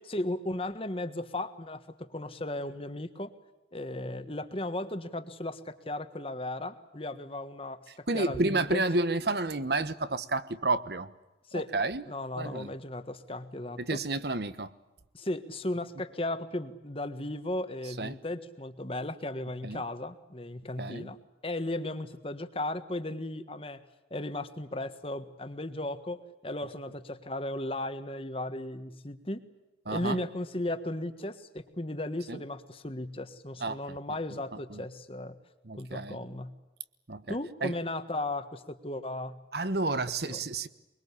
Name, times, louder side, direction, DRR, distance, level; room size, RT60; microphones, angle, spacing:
voice 1, 0.0-3.3 3.7-8.8 11.5-11.7 12.1-14.0 15.1-21.2 21.4-23.8 24.1-29.4 29.9-35.4 35.8-36.6 37.3-39.4 40.2-40.4, left 1 dB, 30° left, 10 dB, 1.5 m, -36 dB
voice 2, 8.1-11.1 11.7-12.0 12.4-12.7 13.8-14.7 18.0-18.1 19.6-19.8 20.8-21.1 29.9-30.2 32.3-32.4 33.6-33.8 34.7-34.8 35.7-36.2 37.1-37.4 37.6-37.7 39.5-40.7, right 2 dB, 60° right, 13 dB, 1.2 m, -30 dB
24.0 x 23.5 x 8.5 m, 1.0 s
head